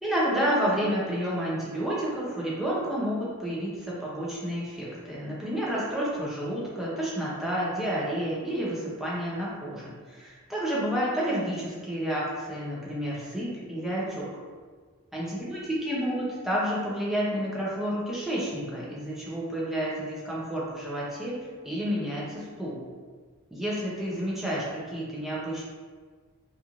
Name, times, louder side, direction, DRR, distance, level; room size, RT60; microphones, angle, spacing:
voice 1, 0.0-14.3 15.1-15.6 15.8-21.4 21.6-22.8 23.5-25.6, equal, ahead, -7 dB, 0.5 m, -30 dB
2.9 x 2.5 x 2.4 m, 1.6 s
head